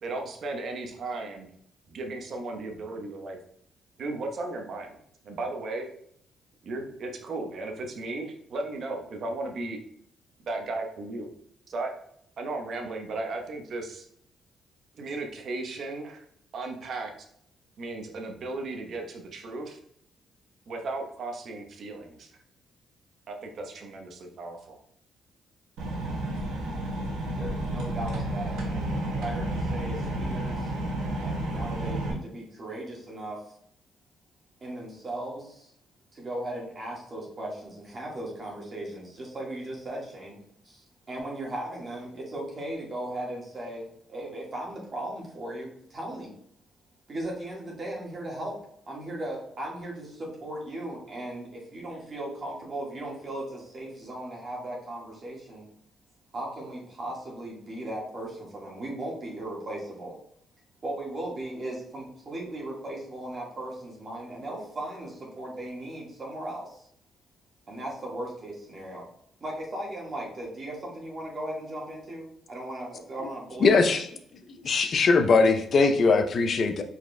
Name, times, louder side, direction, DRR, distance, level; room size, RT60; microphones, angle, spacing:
voice 1, 0.0-1.5 1.9-3.4 4.0-5.0 5.2-5.9 6.6-9.8 10.5-11.3 11.7-11.9 12.4-14.0 15.0-16.2 16.5-17.1 17.8-19.8 20.7-22.3 23.3-24.8, right 2 dB, 60° right, 3 dB, 0.9 m, -35 dB
sound 1, 25.8-32.1, right 1 dB, 90° right, 1.1 m, -31 dB
voice 2, 27.4-30.7 31.2-33.5 34.6-35.7 36.1-46.3 47.1-48.6 48.9-55.7 56.3-60.2 60.8-66.9 67.7-69.1 69.4-73.9, right 1 dB, 40° right, -3 dB, 1.6 m, -37 dB
voice 3, 73.6-74.1 74.6-76.8, left 4 dB, 50° left, 7 dB, 0.6 m, -21 dB
4.8 x 4.3 x 2.2 m, 0.68 s
cardioid pair, 90°, 0 cm